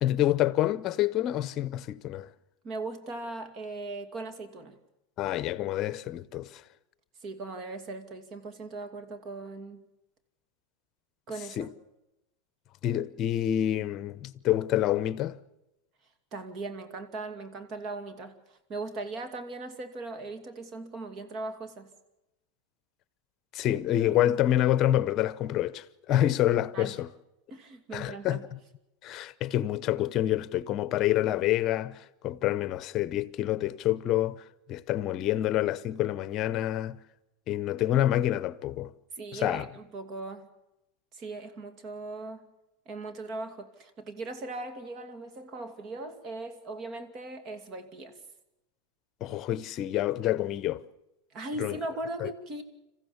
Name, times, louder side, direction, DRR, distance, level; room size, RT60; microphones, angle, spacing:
voice 1, 0.0-2.3 5.2-6.5 11.6-11.7 12.8-15.4 23.5-27.1 27.9-28.4 29.0-32.0 32.2-34.4 34.7-37.0 37.5-38.9 39.3-39.7 49.2-50.8 51.6-51.8 52.2-52.3, left 13 dB, 40° left, 0.9 m, -27 dB
voice 2, 2.6-4.8 7.2-9.8 11.3-11.7 16.3-21.9 26.7-26.9 27.5-28.5 39.2-40.5 41.1-42.5 42.9-48.1 51.3-52.6, right 2 dB, 40° right, 2.6 m, -39 dB
27.0 x 15.0 x 7.2 m
supercardioid pair, 125°, 0 cm